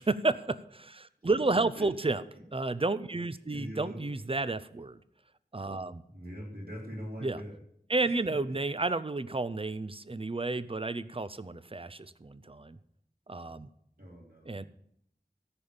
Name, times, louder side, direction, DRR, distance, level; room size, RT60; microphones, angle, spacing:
voice 1, 0.0-2.2 2.5-5.0 5.5-6.0 7.2-7.4 7.9-12.8 13.3-13.7 14.5-14.7, right 3 dB, 35° right, 15 dB, 0.6 m, -31 dB
voice 2, 1.7-2.1 3.5-4.0 6.1-7.6 8.5-8.6 14.0-14.7, equal, 65° right, -1 dB, 3.2 m, -42 dB
14.0 x 5.1 x 7.2 m, 0.72 s
wide cardioid pair, 40°, 17 cm